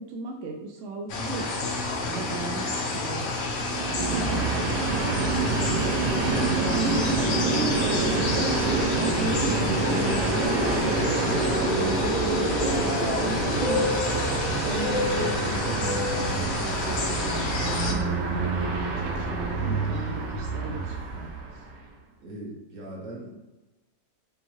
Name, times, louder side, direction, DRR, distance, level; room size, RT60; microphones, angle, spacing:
voice 1, 0.0-1.5 2.0-3.2 3.9-5.9 6.2-9.5 9.8-11.1 11.5-13.9 14.6-21.6, right 2 dB, 70° right, 1 dB, 0.7 m, -36 dB
sound 1, 1.1-17.9, left 3 dB, 85° left, 1.4 m, -29 dB
sound 2, 1.6-16.8 17.1-17.5 18.0-18.2, left 2 dB, 70° left, 0.8 m, -45 dB
Train, 3.7-21.8, right 3 dB, 85° right, 1.4 m, -27 dB
voice 2, 22.2-23.3, right 1 dB, 55° right, -3 dB, 1.4 m, -39 dB
5.2 x 2.2 x 3.0 m, 1.1 s
omnidirectional pair, 1.8 m